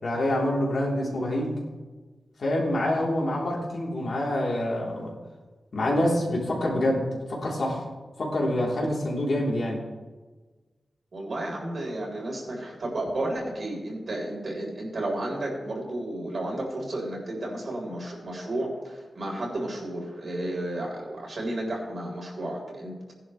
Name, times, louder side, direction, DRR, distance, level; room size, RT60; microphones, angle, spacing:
voice 1, 0.0-1.6 2.4-5.2 5.7-7.8 8.2-9.8, left 1 dB, 60° left, -3 dB, 3.5 m, -26 dB
voice 2, 11.1-23.1, right 1 dB, 50° right, -2 dB, 4.1 m, -32 dB
19.0 x 11.0 x 3.3 m, 1.3 s
wide cardioid pair, 170°, 0 cm